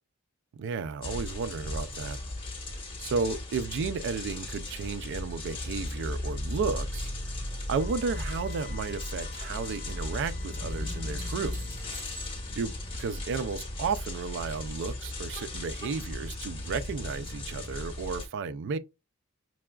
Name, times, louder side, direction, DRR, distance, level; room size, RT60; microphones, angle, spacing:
voice 1, 0.5-2.2 3.0-7.1 7.7-11.6 12.6-12.7 13.0-18.8, right 5 dB, 55° right, 0.3 m, -33 dB
sound 1, 1.0-18.3, left 1 dB, 25° left, 1.2 m, -36 dB
sound 2, 4.3-7.8 8.1-8.7 10.8-12.7 15.3-15.4, right 2 dB, 75° right, 1.7 m, -52 dB
Wind instrument woodwind instrument, 7.8-15.7, left 5 dB, 50° left, 0.5 m, -54 dB
6.0 x 2.3 x 2.2 m
head